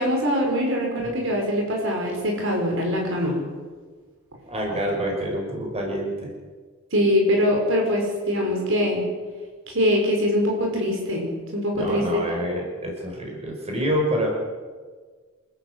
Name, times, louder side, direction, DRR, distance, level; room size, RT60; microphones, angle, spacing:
voice 1, 0.0-3.4 6.9-9.0 9.7-12.0, equal, 65° right, 0 dB, 5.7 m, -23 dB
voice 2, 4.5-6.3 11.7-14.3, equal, 30° right, -1 dB, 5.9 m, -27 dB
27.5 x 14.0 x 8.3 m, 1.5 s
head